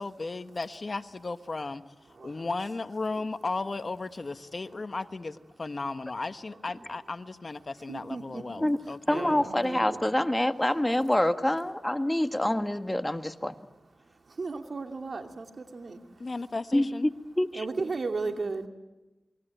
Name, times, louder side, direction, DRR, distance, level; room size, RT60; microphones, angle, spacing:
voice 1, 0.0-1.8 2.2-9.4 16.2-17.1, left 3 dB, 50° left, 11 dB, 1.2 m, -35 dB
voice 2, 2.1-2.5 3.1-3.3 4.6-4.7 7.9-10.1 10.8-10.9 11.7-11.8 13.4-13.6 14.0-16.3 17.5-18.7, right 3 dB, 65° right, 5 dB, 2.6 m, -36 dB
voice 3, 9.1-13.5 16.7-17.1 17.4-17.6, left 1 dB, 15° left, 9 dB, 1.6 m, -26 dB
28.5 x 22.5 x 9.2 m, 1.1 s
cardioid pair, 40°, 0 cm